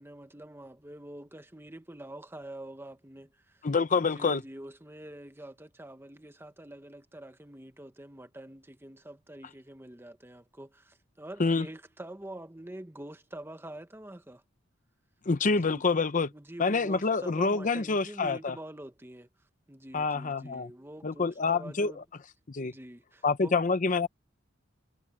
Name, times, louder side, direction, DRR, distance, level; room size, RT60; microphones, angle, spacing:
voice 1, 0.0-3.6 4.1-14.4 15.5-15.8 16.3-19.3 19.7-22.0 22.6-23.6, right 1 dB, 10° right, 1.2 m, -46 dB
voice 2, 3.6-4.4 11.4-11.7 15.3-16.3 16.6-18.6 19.9-20.7 21.0-22.0 22.5-22.7 23.2-24.1, left 4 dB, 40° left, 0.7 m, -27 dB
head